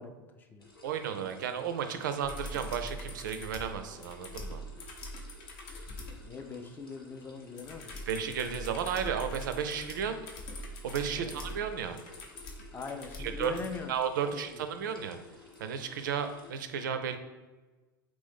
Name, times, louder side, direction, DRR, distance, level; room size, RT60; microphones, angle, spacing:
voice 1, 0.0-0.7 6.2-7.9 11.2-11.3 12.7-13.9 14.3-14.6, left 5 dB, 15° left, 6 dB, 0.3 m, -41 dB
sound 1, 0.6-16.5, left 3 dB, 90° left, 0.7 m, -55 dB
voice 2, 0.8-4.6 8.1-10.2 10.8-12.0 13.2-13.5 13.9-15.2 15.6-17.2, right 7 dB, 65° right, 8 dB, 0.4 m, -33 dB
sound 2, 2.2-6.2 7.6-13.8 15.5-15.6, equal, 45° left, 0.7 m, -43 dB
3.0 x 2.6 x 3.4 m, 1.2 s
figure-of-eight pair, 90°, 12 cm